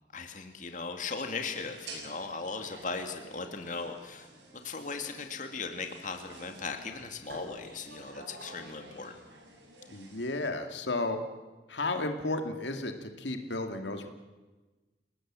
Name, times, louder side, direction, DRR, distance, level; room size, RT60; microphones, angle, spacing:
voice 1, 0.1-4.3 4.6-9.1, left 4 dB, 45° left, 5 dB, 2.2 m, -38 dB
sound 1, 1.5-10.3, right 1 dB, 80° right, 7.0 m, -50 dB
voice 2, 9.9-11.2 11.7-14.1, left 2 dB, 85° left, 5 dB, 2.4 m, -33 dB
29.5 x 19.0 x 7.6 m, 1.2 s
head